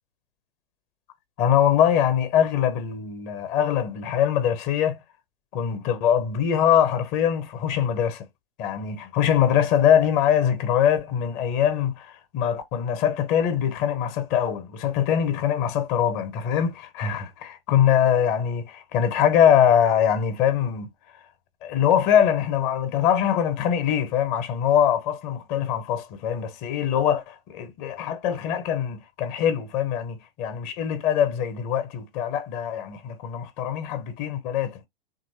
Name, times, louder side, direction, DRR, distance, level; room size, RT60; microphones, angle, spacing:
voice 1, 1.4-5.0 5.5-8.3 8.6-20.9 21.6-34.8, left 9 dB, 30° left, 0.7 m, -23 dB
3.0 x 2.5 x 3.1 m
figure-of-eight pair, 110°, 30 cm